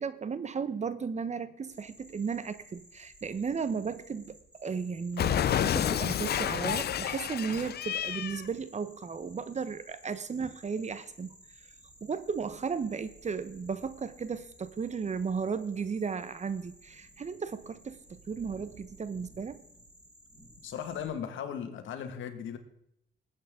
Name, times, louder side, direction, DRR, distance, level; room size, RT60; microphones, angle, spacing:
voice 1, 0.0-11.3 12.0-19.6, right 5 dB, 35° right, 13 dB, 1.0 m, -35 dB
sound 1, 1.6-21.1, right 1 dB, 5° right, 4.5 m, -56 dB
Cat, 5.2-8.5, left 10 dB, 55° left, 0.6 m, -29 dB
voice 2, 20.6-22.6, left 8 dB, 75° left, 7 dB, 1.8 m, -37 dB
19.5 x 8.6 x 3.7 m, 0.78 s
cardioid pair, 90°, 20 cm